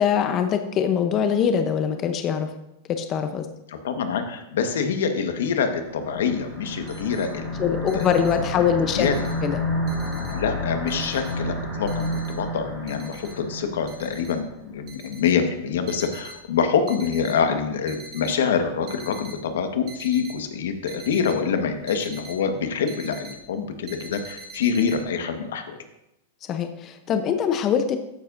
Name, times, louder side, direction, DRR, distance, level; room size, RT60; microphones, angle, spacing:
voice 1, 0.0-2.5 2.9-3.5 7.6-9.1 9.4-9.6 26.5-28.0, left 8 dB, 25° left, 7 dB, 0.7 m, -23 dB
voice 2, 3.7-8.1 8.6-9.2 10.3-25.8, left 6 dB, 85° left, 6 dB, 1.3 m, -26 dB
sound 1, 5.7-14.3, left 1 dB, 5° left, 3.4 m, -30 dB
sound 2, 6.4-6.5 6.7-7.3 7.6-9.5 9.9-10.6 10.9-12.6 12.9-13.4 13.9-14.4 14.8-16.4 16.8-17.4 17.8-18.4 18.7-19.4 19.9-22.4 22.6-23.5 23.9-25.0, right 3 dB, 30° right, 1.3 m, -43 dB
13.5 x 9.4 x 2.6 m, 0.88 s
supercardioid pair, 160°, 0 cm